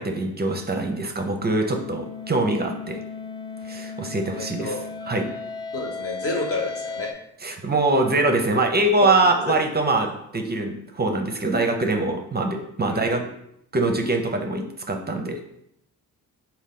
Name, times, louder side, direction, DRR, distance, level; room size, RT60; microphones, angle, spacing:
voice 1, 0.0-3.0 3.6-4.8 5.1-5.3 7.4-13.3 13.7-15.4, right 2 dB, 25° right, 4 dB, 0.6 m, -23 dB
sound 1, 0.8-7.1, left 5 dB, 15° left, 0.3 m, -36 dB
voice 2, 4.3-4.8 5.7-7.2 9.0-9.1 9.5-9.6 10.0-10.1 12.9-13.1, left 2 dB, 35° left, 1 dB, 1.2 m, -30 dB
3.6 x 2.4 x 3.7 m, 0.76 s
supercardioid pair, 55°, 39 cm